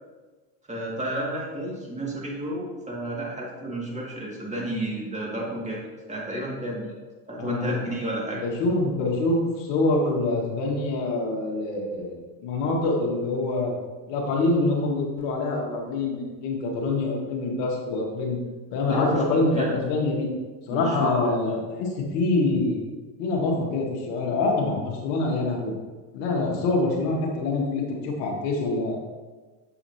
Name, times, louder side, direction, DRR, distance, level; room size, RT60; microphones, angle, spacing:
voice 1, 0.7-6.9 7.3-8.4 18.9-19.7 20.7-21.1, right 1 dB, 15° right, -4 dB, 2.1 m, -31 dB
voice 2, 7.4-7.8 8.3-13.7 14.1-18.4 18.7-20.3 20.7-22.8 23.2-25.7 26.1-29.0, left 2 dB, 70° left, -1 dB, 1.8 m, -25 dB
7.2 x 5.8 x 2.8 m, 1.3 s
hypercardioid pair, 90°, 49 cm